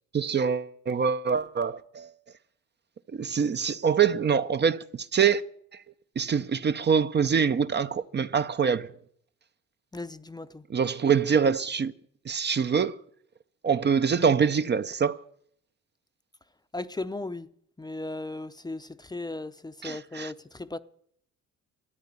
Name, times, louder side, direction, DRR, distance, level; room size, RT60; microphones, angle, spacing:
voice 1, 0.1-2.1 3.1-5.4 6.2-8.9 10.7-11.9 12.3-12.9 13.6-15.2 19.8-20.3, right 6 dB, 35° right, 0.6 m, -25 dB
voice 2, 9.9-10.6 16.7-17.5 17.8-20.8, left 2 dB, 15° left, 0.6 m, -36 dB
13.5 x 9.6 x 9.6 m
cardioid pair, 90°, 30 cm